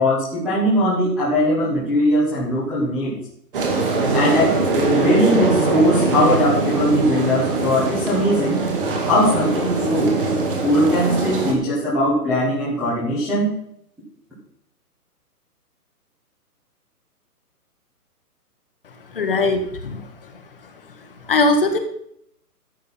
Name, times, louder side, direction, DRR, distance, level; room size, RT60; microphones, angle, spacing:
voice 1, 0.0-3.1 4.1-8.6 9.1-10.2 10.6-13.5, equal, ahead, -10 dB, 1.2 m, -20 dB
sound 1, 3.5-11.5, right 3 dB, 35° right, 2.3 m, -22 dB
voice 2, 19.1-20.0 21.3-21.8, left 2 dB, 35° left, 6 dB, 1.5 m, -19 dB
13.0 x 7.8 x 5.4 m, 0.71 s
hypercardioid pair, 170°, 47 cm